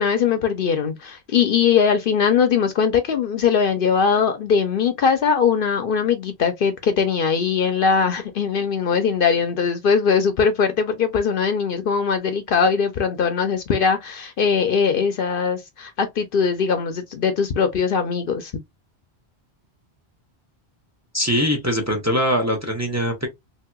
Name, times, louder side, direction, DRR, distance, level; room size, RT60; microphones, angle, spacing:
voice 1, 0.0-18.5, left 6 dB, 60° left, 0.7 m, -20 dB
voice 2, 21.1-23.3, equal, 15° right, 0.7 m, -22 dB
3.2 x 2.7 x 2.2 m
omnidirectional pair, 1.1 m